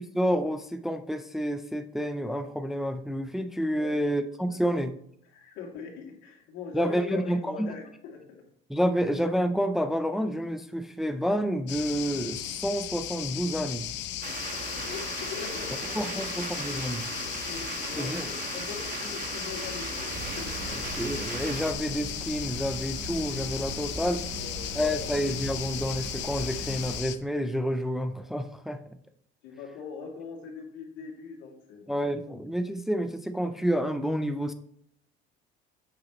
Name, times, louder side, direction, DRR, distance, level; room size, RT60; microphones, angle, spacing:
voice 1, 0.0-4.9 6.7-7.7 8.7-13.9 16.0-17.0 18.0-18.3 21.0-24.3 24.7-28.8 31.9-34.5, equal, ahead, 8 dB, 0.4 m, -29 dB
voice 2, 5.3-8.4 14.7-16.0 17.1-20.8 23.9-25.1 29.4-32.0, left 5 dB, 80° left, 0 dB, 2.6 m, -42 dB
sound 1, 11.7-27.2, left 12 dB, 65° left, 0.7 m, -36 dB
sound 2, 14.2-21.7, right 6 dB, 45° right, 1.4 m, -38 dB
sound 3, 20.1-27.0, right 3 dB, 60° right, 3.4 m, -40 dB
8.8 x 7.9 x 3.0 m, 0.69 s
cardioid pair, 135°, 20 cm